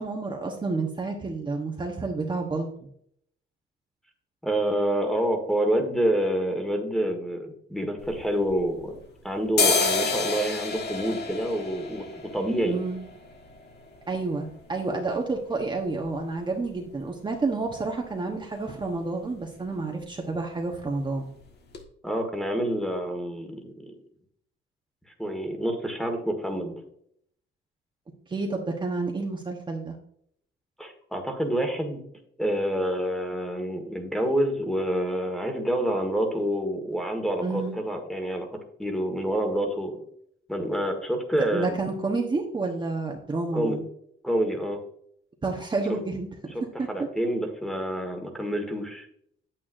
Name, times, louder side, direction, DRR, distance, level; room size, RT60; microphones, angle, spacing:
voice 1, 0.0-2.9 12.6-13.0 14.1-21.3 28.3-30.0 37.4-37.7 41.5-43.8 45.4-46.3 46.8-46.9, right 3 dB, 20° right, 1 dB, 1.1 m, -29 dB
voice 2, 4.4-8.9 9.2-12.1 12.3-12.8 22.0-24.0 25.2-26.7 30.8-32.0 32.4-38.5 38.8-40.0 40.5-41.8 43.5-43.8 44.2-44.8 46.9-49.0, right 1 dB, ahead, 5 dB, 1.6 m, -27 dB
sound 1, 8.0-9.0 9.4-17.1 17.4-17.5 17.8-18.3 18.6-18.9 19.1-19.4 19.6-20.4 20.7-20.9 21.4-21.5 21.7-21.8, left 4 dB, 50° left, 1.6 m, -31 dB
9.3 x 8.9 x 2.6 m, 0.67 s
cardioid pair, 135°, 21 cm